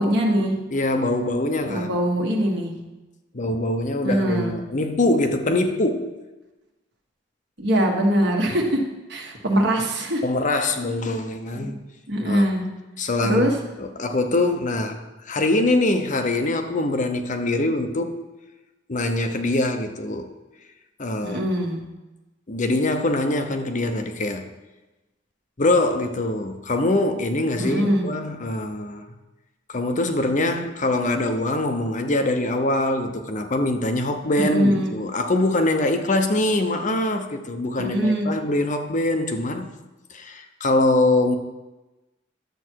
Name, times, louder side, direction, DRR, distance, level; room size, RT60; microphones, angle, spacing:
voice 1, 0.0-0.5 1.7-2.7 4.0-4.6 7.6-8.8 9.1-10.2 11.5-11.7 12.1-12.7 13.2-13.5 21.2-21.8 27.6-28.1 34.4-34.9 37.8-38.3, equal, 65° right, 1 dB, 1.6 m, -22 dB
voice 2, 0.7-1.9 3.3-6.1 10.2-11.8 12.2-12.5 13.0-13.5 13.8-18.2 18.9-20.4 21.0-21.5 22.5-24.4 25.6-29.0 29.7-39.7 40.1-41.4, left 2 dB, 45° left, 6 dB, 0.8 m, -23 dB
10.5 x 7.4 x 4.6 m, 1.1 s
head